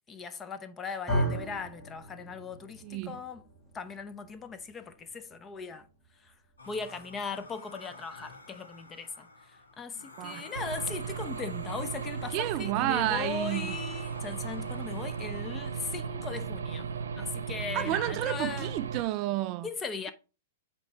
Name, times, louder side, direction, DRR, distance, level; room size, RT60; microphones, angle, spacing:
voice 1, 0.1-3.5 3.7-5.9 6.2-6.3 6.6-16.9 17.2-18.7 19.6-20.1, left 5 dB, 20° left, 0.7 m, -38 dB
sound 1, 1.1-9.3, right 1 dB, 5° left, 2.8 m, -38 dB
voice 2, 2.8-3.2 10.2-10.4 12.3-13.8 17.7-19.7, right 16 dB, 35° right, 0.3 m, -31 dB
sound 2, 6.6-16.1, left 3 dB, 75° left, 1.3 m, -50 dB
Aircraft / Engine, 10.5-19.0, right 6 dB, 70° right, 0.8 m, -36 dB
8.0 x 2.9 x 4.5 m
figure-of-eight pair, 105°, 0 cm